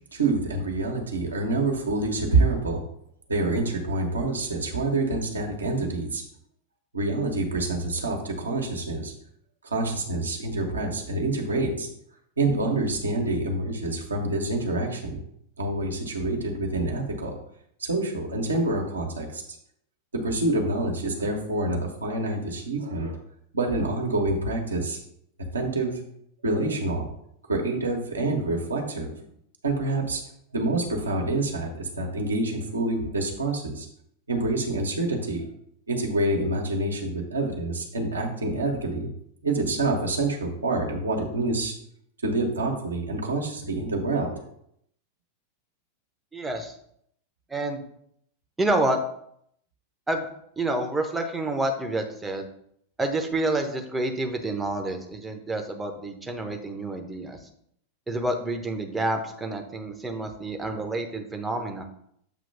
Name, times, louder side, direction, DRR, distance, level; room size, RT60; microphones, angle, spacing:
voice 1, 0.1-2.8 3.3-6.2 6.9-9.1 9.6-11.9 12.4-15.2 15.6-17.4 17.8-19.4 20.1-23.2 23.5-25.0 25.5-26.0 26.4-27.1 27.5-29.1 29.6-30.2 30.5-33.9 34.3-35.4 35.9-39.1 39.4-41.7 42.2-44.3, right 2 dB, 75° right, 1 dB, 1.1 m, -27 dB
voice 2, 46.3-46.7 47.5-47.8 48.6-49.0 50.1-50.3 50.6-52.5 53.0-57.5 58.1-61.8, right 2 dB, 10° right, 4 dB, 0.9 m, -28 dB
7.2 x 3.0 x 5.4 m, 0.71 s
figure-of-eight pair, 90°, 0 cm